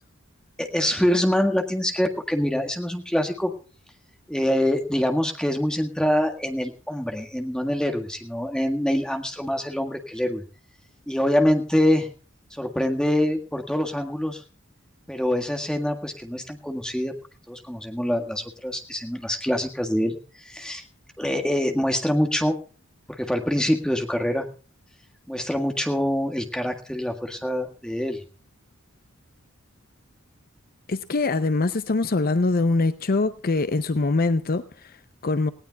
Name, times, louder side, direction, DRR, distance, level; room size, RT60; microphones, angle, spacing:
voice 1, 0.6-3.5 4.3-10.4 11.1-12.1 12.5-14.4 15.1-17.1 17.5-20.2 20.5-20.8 21.2-22.6 23.2-24.5 25.3-28.2, left 1 dB, 5° left, 1.7 m, -25 dB
voice 2, 30.9-35.5, left 3 dB, 45° left, 0.6 m, -23 dB
19.0 x 17.0 x 2.3 m
head